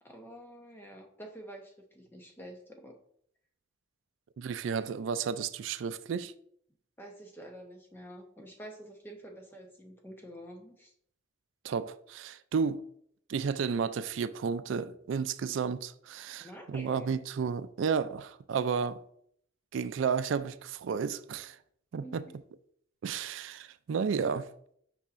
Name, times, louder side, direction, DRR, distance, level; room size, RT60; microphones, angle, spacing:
voice 1, 0.0-2.9 7.0-10.9 16.4-17.1 22.0-22.3, right 1 dB, 10° left, 0.9 m, -48 dB
voice 2, 4.4-6.3 11.6-12.8 13.3-19.0 19.7-21.6 21.9-22.2 23.0-24.5, right 6 dB, 80° right, 0.4 m, -32 dB
8.5 x 5.5 x 2.5 m
head